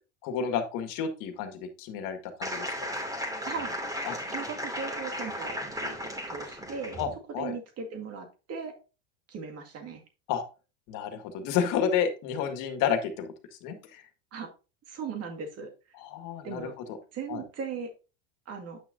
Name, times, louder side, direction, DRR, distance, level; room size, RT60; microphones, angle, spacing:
voice 1, 0.2-2.9 4.1-4.2 7.0-7.5 10.3-10.4 10.9-13.3 13.6-14.0 16.0-16.7 17.3-17.4, left 7 dB, 55° left, 8 dB, 1.8 m, -31 dB
sound 1, 2.4-7.1, equal, 10° right, 2.7 m, -35 dB
voice 2, 3.4-3.8 4.3-7.0 7.4-8.7 9.3-10.0 14.3-14.5 14.9-15.7 16.4-16.7 17.1-17.9 18.5-18.8, right 5 dB, 40° right, 3 dB, 2.1 m, -38 dB
9.1 x 6.0 x 2.7 m, 0.32 s
supercardioid pair, 105°, 37 cm